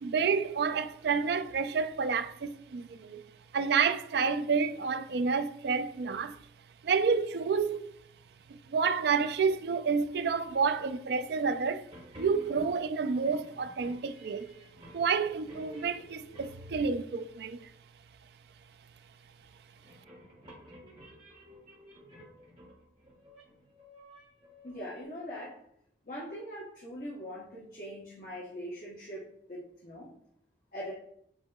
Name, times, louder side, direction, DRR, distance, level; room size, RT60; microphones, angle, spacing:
voice 1, 0.0-3.2 3.5-6.4 6.8-7.8 8.5-11.8 12.2-14.5 14.9-17.6, right 5 dB, 60° right, 0.3 m, -29 dB
sound 1, 11.8-17.1 19.4-25.0, equal, 30° right, 1.5 m, -53 dB
voice 2, 24.6-25.6 26.0-30.1 30.7-30.9, equal, 50° left, 1.0 m, -42 dB
8.1 x 2.8 x 2.3 m
head